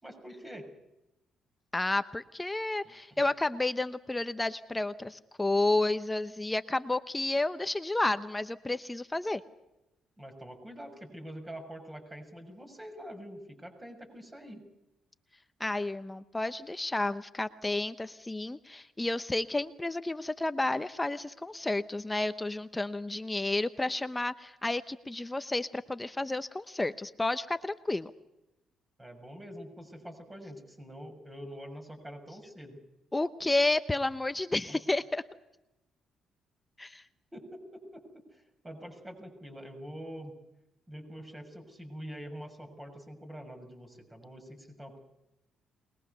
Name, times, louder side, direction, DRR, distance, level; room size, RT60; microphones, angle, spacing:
voice 1, 0.0-0.7 2.8-3.2 10.2-14.6 29.0-32.8 34.7-34.8 37.3-40.3 40.9-45.0, equal, 15° right, 5 dB, 6.7 m, -45 dB
voice 2, 1.7-9.4 15.6-28.1 33.1-35.2 36.8-37.0, left 2 dB, 15° left, 11 dB, 0.9 m, -31 dB
23.5 x 21.0 x 6.8 m, 0.93 s
cardioid pair, 90°, 0 cm